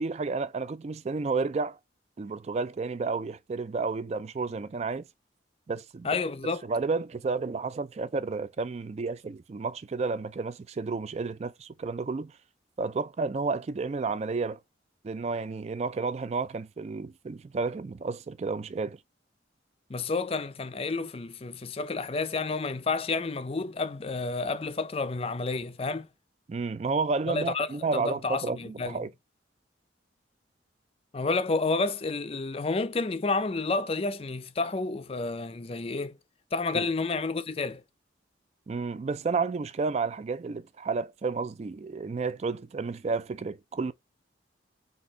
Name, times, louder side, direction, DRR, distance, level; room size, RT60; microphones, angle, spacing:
voice 1, 0.0-1.8 2.2-5.1 5.7-6.1 6.7-12.3 12.8-14.6 15.0-19.0 26.5-29.1 36.7-36.9 38.7-43.9, right 4 dB, 35° right, 0.3 m, -31 dB
voice 2, 6.0-6.6 19.9-26.1 27.3-29.1 31.1-36.2 36.5-37.8, left 3 dB, 30° left, 0.4 m, -30 dB
4.1 x 2.8 x 4.5 m
head